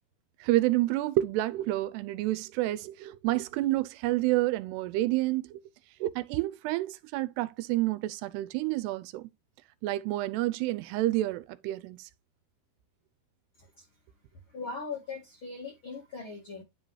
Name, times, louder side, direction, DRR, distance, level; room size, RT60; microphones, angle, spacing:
voice 1, 0.4-5.6 6.0-9.3 9.8-12.1, right 17 dB, 90° right, 2.7 m, -29 dB
voice 2, 14.5-16.6, left 4 dB, 60° left, 1.3 m, -40 dB
10.5 x 3.9 x 3.2 m
omnidirectional pair, 4.7 m